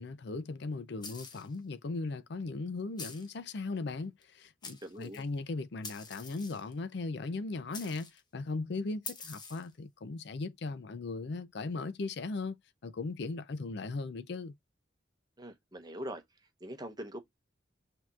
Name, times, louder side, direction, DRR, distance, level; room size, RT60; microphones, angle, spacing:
voice 1, 0.0-14.6, left 3 dB, 60° left, 0.5 m, -38 dB
sound 1, 1.0-1.6 3.0-3.4 4.2-4.3 4.6-5.3 5.8-6.7 7.7-8.2 9.0-9.7, left 4 dB, 25° left, 0.9 m, -45 dB
voice 2, 4.8-5.2 15.4-16.2 16.6-17.2, equal, 20° right, 1.0 m, -42 dB
6.3 x 2.9 x 2.3 m
head